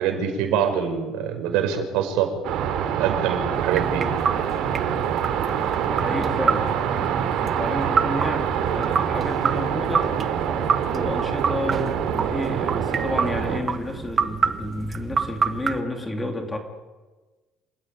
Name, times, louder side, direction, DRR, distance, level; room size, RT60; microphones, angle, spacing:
voice 1, 0.0-2.3 3.0-4.0, right 8 dB, 75° right, 6 dB, 5.7 m, -24 dB
sound 1, 2.4-13.6, right 8 dB, 55° right, 3.4 m, -25 dB
sound 2, 3.5-15.8, right 5 dB, 25° right, 1.4 m, -28 dB
voice 2, 5.9-16.6, left 1 dB, 10° left, 3 dB, 2.3 m, -31 dB
27.5 x 16.5 x 9.5 m, 1.3 s
cardioid pair, 170°, 0 cm